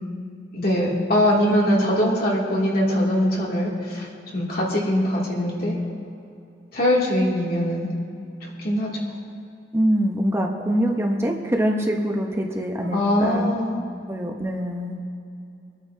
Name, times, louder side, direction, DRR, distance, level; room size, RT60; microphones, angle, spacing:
voice 1, 0.5-5.8 6.7-7.9 8.6-9.1 12.9-13.8, left 1 dB, 55° left, -4 dB, 2.6 m, -22 dB
voice 2, 9.7-13.5 14.1-15.0, equal, 15° right, 1 dB, 0.9 m, -24 dB
26.0 x 9.6 x 2.8 m, 2.6 s
head